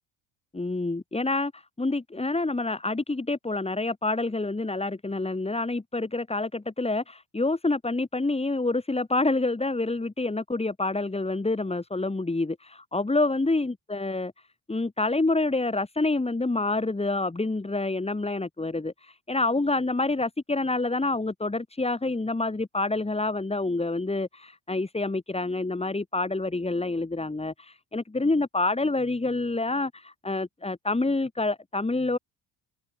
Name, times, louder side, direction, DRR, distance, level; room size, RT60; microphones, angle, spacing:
voice 1, 0.5-14.3 14.7-32.2, left 2 dB, 15° left, 6.1 m, -27 dB
supercardioid pair, 80°, 37 cm